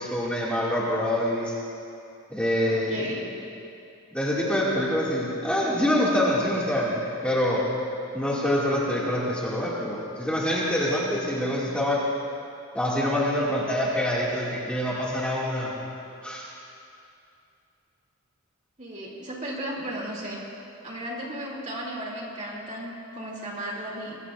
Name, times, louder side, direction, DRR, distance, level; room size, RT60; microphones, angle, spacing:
voice 1, 0.0-1.5 2.3-3.1 4.1-7.6 8.1-12.0 12.7-15.7 16.2-16.5, left 1 dB, 5° left, -7 dB, 2.0 m, -25 dB
voice 2, 2.6-3.4 18.8-20.4 20.8-24.2, right 1 dB, 30° right, -2 dB, 2.5 m, -35 dB
24.0 x 20.5 x 2.5 m, 2.6 s
head